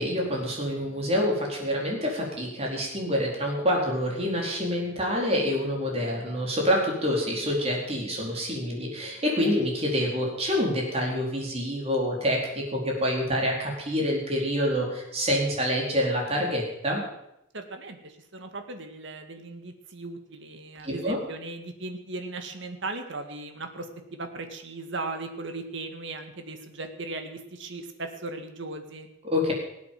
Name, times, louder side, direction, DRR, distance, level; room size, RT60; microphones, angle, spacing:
voice 1, 0.0-17.0 20.8-21.2 29.2-29.5, equal, 30° right, -1 dB, 4.4 m, -27 dB
voice 2, 17.5-23.9 24.1-29.1, right 2 dB, 65° right, 6 dB, 1.9 m, -37 dB
18.5 x 8.6 x 7.6 m, 0.82 s
head